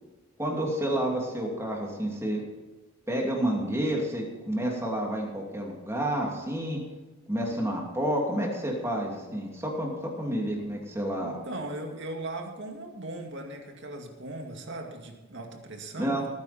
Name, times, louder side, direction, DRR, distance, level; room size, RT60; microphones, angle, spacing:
voice 1, 0.4-2.4 3.1-6.8 7.3-11.4 16.0-16.2, right 1 dB, 15° right, -1 dB, 2.7 m, -29 dB
voice 2, 11.2-16.3, right 2 dB, 60° right, 3 dB, 2.3 m, -38 dB
19.0 x 9.8 x 4.3 m, 1.2 s
head